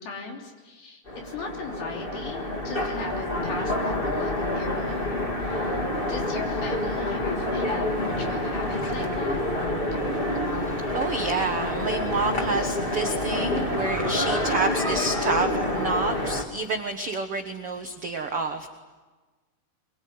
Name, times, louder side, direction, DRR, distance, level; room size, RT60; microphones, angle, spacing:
voice 1, 0.0-9.4, left 4 dB, 65° left, 1 dB, 5.1 m, -38 dB
Train, 1.0-16.4, left 1 dB, 20° left, 1.4 m, -27 dB
voice 2, 10.4-18.7, right 3 dB, 75° right, 4 dB, 1.3 m, -29 dB
24.0 x 23.0 x 9.6 m, 1.3 s
omnidirectional pair, 4.7 m